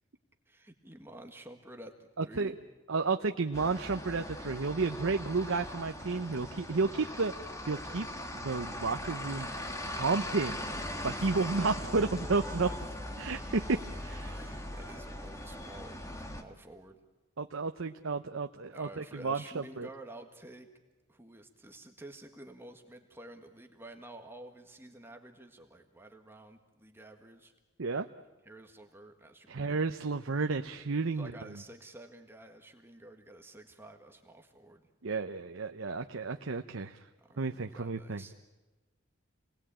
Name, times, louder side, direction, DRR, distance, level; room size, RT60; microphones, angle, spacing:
voice 1, 0.5-2.6 11.1-11.5 12.4-12.8 14.2-17.0 18.7-20.7 21.1-27.5 28.4-29.9 31.1-34.9 37.2-38.3, right 1 dB, 10° right, 4 dB, 1.7 m, -51 dB
voice 2, 2.2-2.5 2.9-7.3 7.7-8.1 8.3-9.5 9.9-10.6 11.0-12.7 13.2-14.3 17.4-19.9 27.8-28.1 29.5-31.3 35.0-37.0 37.4-38.2, right 4 dB, 80° right, 7 dB, 0.8 m, -32 dB
sound 1, 3.5-16.4, left 1 dB, 15° left, 1.5 m, -40 dB
27.5 x 19.5 x 8.8 m, 1.2 s
head